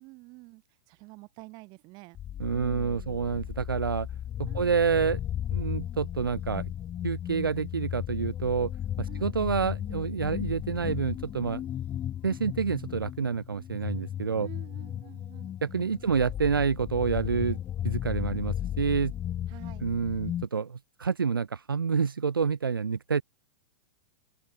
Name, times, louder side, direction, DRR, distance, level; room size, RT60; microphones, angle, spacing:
voice 1, 0.0-2.2 2.5-3.4 4.5-4.8 9.1-9.4 14.4-15.5 16.0-16.2 19.5-19.9, right 25 dB, 40° right, 2.4 m, -49 dB
sound 1, 2.1-20.5, left 11 dB, 20° left, 0.3 m, -35 dB
voice 2, 2.4-4.1 4.4-5.2 5.5-6.7 7.0-8.7 9.0-11.6 12.2-14.5 15.6-17.6 17.8-19.1 19.8-23.2, right 6 dB, 80° right, 0.7 m, -28 dB
open air
figure-of-eight pair, 100°, 11 cm